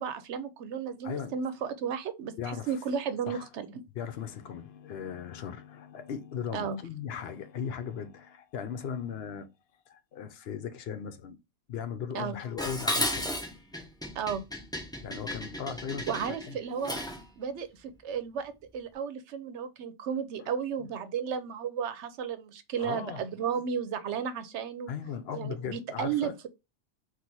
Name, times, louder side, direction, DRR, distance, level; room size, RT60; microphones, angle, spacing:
voice 1, 0.0-3.8 6.5-6.8 12.1-12.4 14.2-14.4 16.1-17.0 17.4-24.9 25.4-26.3, right 7 dB, 85° right, 0.9 m, -34 dB
voice 2, 1.0-1.3 2.4-2.8 3.3-3.5 3.9-9.5 9.9-11.4 11.7-13.3 15.0-16.2 20.4-20.5 20.8-20.9 22.8-23.2 24.9-26.3, left 7 dB, 65° left, 0.8 m, -37 dB
Dishes pots and pans, 12.6-17.3, equal, 5° left, 0.7 m, -34 dB
4.1 x 2.5 x 4.5 m
omnidirectional pair, 1.2 m